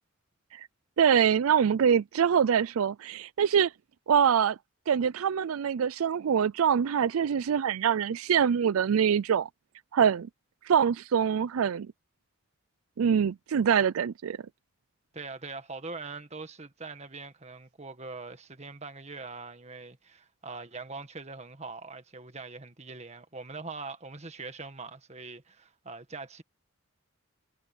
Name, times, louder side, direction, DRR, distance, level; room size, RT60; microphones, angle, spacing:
voice 1, 1.0-3.7 4.1-4.6 4.9-9.5 9.9-10.3 10.7-11.9 13.0-14.4, right 7 dB, 85° right, 0.4 m, -24 dB
voice 2, 15.1-26.4, right 3 dB, 30° right, 1.7 m, -42 dB
head